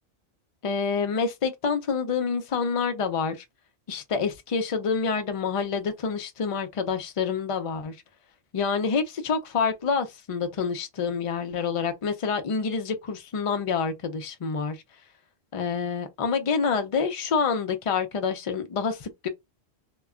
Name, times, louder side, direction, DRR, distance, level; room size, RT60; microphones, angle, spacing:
voice 1, 0.6-3.4 3.9-7.9 8.5-14.8 15.5-19.3, left 5 dB, 45° left, 0.4 m, -27 dB
2.2 x 2.1 x 3.5 m
omnidirectional pair, 1.1 m